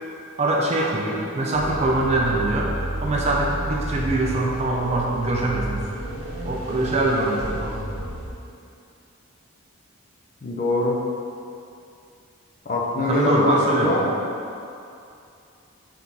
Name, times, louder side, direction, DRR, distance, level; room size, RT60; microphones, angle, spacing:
voice 1, 0.4-2.7 3.0-5.8 6.4-7.8 13.1-13.9, right 2 dB, 30° right, -2 dB, 0.3 m, -23 dB
sound 1, 1.5-8.3, right 1 dB, 75° right, 0.7 m, -31 dB
voice 2, 10.4-11.0 12.7-14.2, left 2 dB, 40° left, -3 dB, 0.5 m, -23 dB
3.8 x 3.0 x 3.5 m, 2.6 s
head